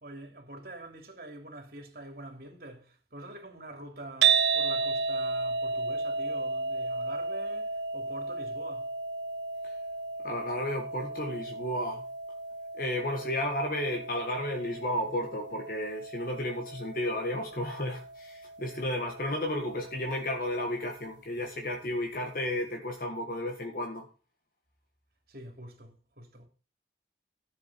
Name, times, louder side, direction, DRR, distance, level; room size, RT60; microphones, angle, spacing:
voice 1, 0.0-8.9 25.3-26.5, right 1 dB, 55° right, 3.0 m, -45 dB
sound 1, 4.2-20.4, right 4 dB, 85° right, 0.8 m, -33 dB
voice 2, 10.2-12.0 12.7-24.1, left 1 dB, 50° left, 1.6 m, -33 dB
13.5 x 7.6 x 4.3 m
head